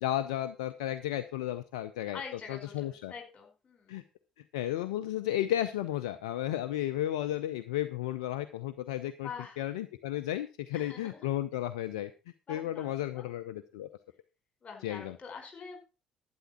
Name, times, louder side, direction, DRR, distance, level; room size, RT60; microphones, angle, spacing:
voice 1, 0.0-2.2 2.5-3.1 3.9-4.0 4.4-9.3 9.6-12.1 12.5-13.9 14.8-15.2, left 13 dB, 70° left, 12 dB, 0.6 m, -33 dB
voice 2, 2.1-4.0 9.2-9.6 10.7-11.4 12.5-13.3 14.6-15.8, left 5 dB, 35° left, 3 dB, 4.9 m, -45 dB
11.5 x 9.6 x 4.3 m, 0.31 s
figure-of-eight pair, 50°, 3 cm